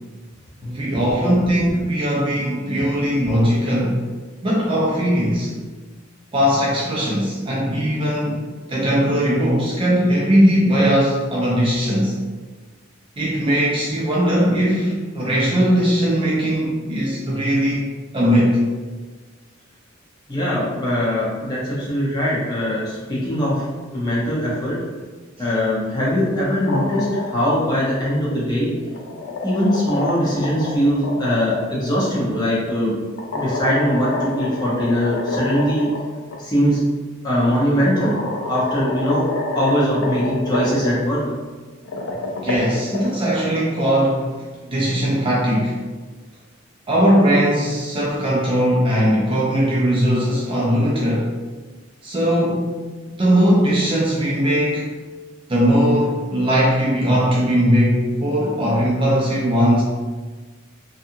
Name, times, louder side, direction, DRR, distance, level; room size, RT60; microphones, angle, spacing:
voice 1, 0.6-4.0 4.4-5.5 6.3-8.4 8.7-12.2 13.2-17.8 18.1-18.6 42.4-44.3 44.7-45.8 46.9-51.3 52.0-52.8 53.1-54.8 55.5-59.8, equal, 25° right, -5 dB, 0.4 m, -19 dB
voice 2, 20.3-23.6 23.9-24.8 25.4-28.7 29.4-32.9 33.3-35.9 36.4-36.8 37.2-38.1 38.5-39.2 39.5-41.2, equal, 20° left, -7 dB, 0.7 m, -21 dB
sound 1, 26.4-27.6 28.7-31.6 33.2-36.0 36.3-36.4 37.4-37.5 38.0-40.9 41.7-43.4, left 2 dB, 70° left, 0.4 m, -27 dB
2.7 x 2.3 x 2.6 m, 1.3 s
head